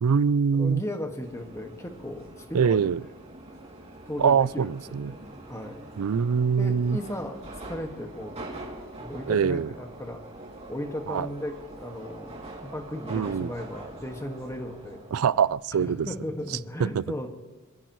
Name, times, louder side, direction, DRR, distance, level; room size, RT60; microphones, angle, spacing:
voice 1, 0.0-0.8 2.5-3.0 4.2-5.2 6.0-7.0 9.3-9.7 11.1-11.3 13.1-13.5 15.1-16.1 16.8-17.0, right 6 dB, 70° right, 20 dB, 0.4 m, -24 dB
voice 2, 0.5-2.9 4.1-5.9 6.6-8.4 9.0-10.2 10.7-15.1 15.8-17.3, left 1 dB, 15° left, 3 dB, 1.7 m, -36 dB
Subway metro underground, 1.2-15.5, right 2 dB, 30° right, 2.7 m, -44 dB
26.0 x 16.0 x 3.1 m, 1.2 s
head